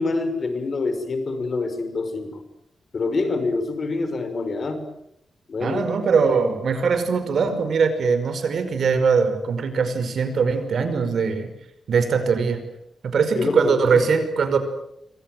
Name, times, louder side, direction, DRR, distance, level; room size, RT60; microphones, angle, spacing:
voice 1, 0.0-2.4 2.9-4.9 5.5-5.9 13.4-14.0, left 3 dB, 45° left, 9 dB, 5.5 m, -26 dB
voice 2, 5.6-11.5 11.9-12.7 13.0-14.6, right 5 dB, 65° right, 9 dB, 5.3 m, -21 dB
28.0 x 25.0 x 7.8 m, 0.78 s
wide cardioid pair, 115°, 0 cm